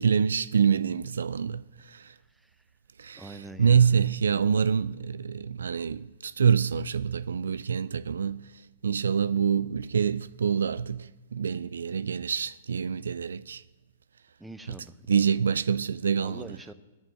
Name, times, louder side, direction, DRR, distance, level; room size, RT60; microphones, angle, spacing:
voice 1, 0.0-2.1 3.0-8.5 8.8-13.6 15.1-16.5, right 7 dB, 75° right, 0.3 m, -26 dB
voice 2, 2.3-2.6 3.1-4.0 14.4-15.0 16.2-16.7, right 2 dB, 5° right, 0.8 m, -44 dB
9.3 x 7.4 x 9.2 m
figure-of-eight pair, 110°, 0 cm